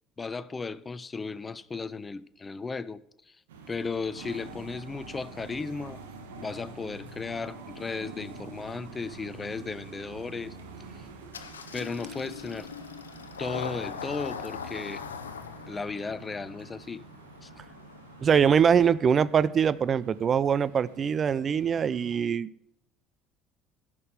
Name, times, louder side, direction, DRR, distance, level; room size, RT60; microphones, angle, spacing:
voice 1, 0.2-3.0 3.3-3.4 3.7-6.0 6.4-10.6 11.0-11.1 11.7-12.7 13.4-15.0 15.7-17.0 17.4-17.5, left 4 dB, 25° left, 0.5 m, -35 dB
sound 1, 3.5-22.2, right 4 dB, 75° right, 1.3 m, -47 dB
Engine starting, 11.3-18.6, left 6 dB, 85° left, 0.6 m, -41 dB
voice 2, 18.2-22.5, right 7 dB, 40° right, 0.4 m, -23 dB
10.5 x 6.1 x 6.6 m
hypercardioid pair, 60°, 0 cm